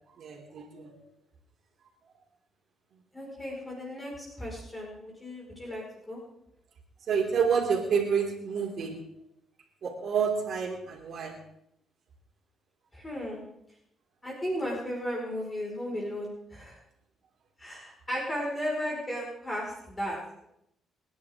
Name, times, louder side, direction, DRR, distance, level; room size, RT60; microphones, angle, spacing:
voice 1, 0.2-1.0 7.1-9.0 9.8-11.4, right 6 dB, 60° right, 1 dB, 3.2 m, -28 dB
voice 2, 3.1-4.1 4.4-6.2 12.9-13.4 14.2-16.7 17.6-20.4, equal, 20° left, -3 dB, 5.0 m, -35 dB
27.0 x 10.5 x 3.7 m, 0.78 s
cardioid pair, 90°, 0 cm